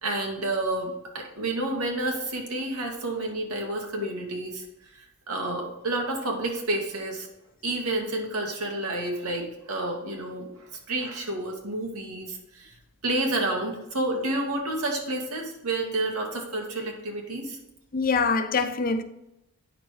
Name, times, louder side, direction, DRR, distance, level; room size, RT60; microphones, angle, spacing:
voice 1, 0.0-4.7 5.3-7.3 7.6-10.5 10.9-12.7 13.0-17.6, right 2 dB, 85° right, 1.9 m, -30 dB
voice 2, 17.9-19.0, left 4 dB, 40° left, 0.5 m, -24 dB
9.0 x 6.2 x 3.4 m
head